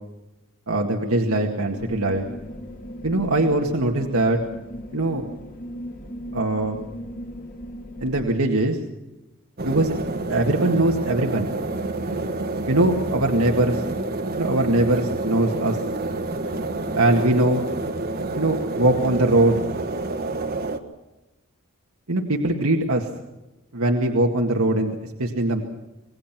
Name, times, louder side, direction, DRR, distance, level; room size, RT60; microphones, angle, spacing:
voice 1, 0.7-2.3 3.0-4.4 4.9-5.3 6.3-6.8 8.0-8.8 9.6-9.9 10.3-11.5 12.7-13.8 14.4-15.8 16.9-17.6 18.3-19.6 22.1-23.1 23.7-25.6, right 2 dB, 75° right, 1 dB, 2.0 m, -21 dB
sound 1, 1.7-8.3, equal, 40° left, 3.2 m, -37 dB
sound 2, 9.6-20.8, right 2 dB, 45° right, 1.6 m, -28 dB
26.0 x 20.0 x 6.0 m, 1.0 s
head